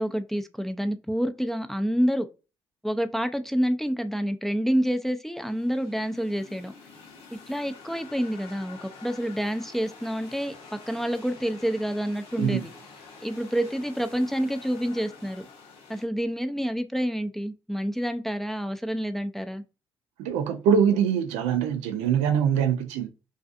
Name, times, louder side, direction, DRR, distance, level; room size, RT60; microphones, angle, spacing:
voice 1, 0.0-2.3 2.8-6.7 7.5-12.7 13.2-15.5 15.9-19.6, equal, 5° left, 0.3 m, -28 dB
sound 1, 5.3-16.0, left 4 dB, 70° left, 0.8 m, -48 dB
voice 2, 20.2-23.1, right 8 dB, 90° right, 0.4 m, -23 dB
2.4 x 2.4 x 2.4 m
supercardioid pair, 65°, 11 cm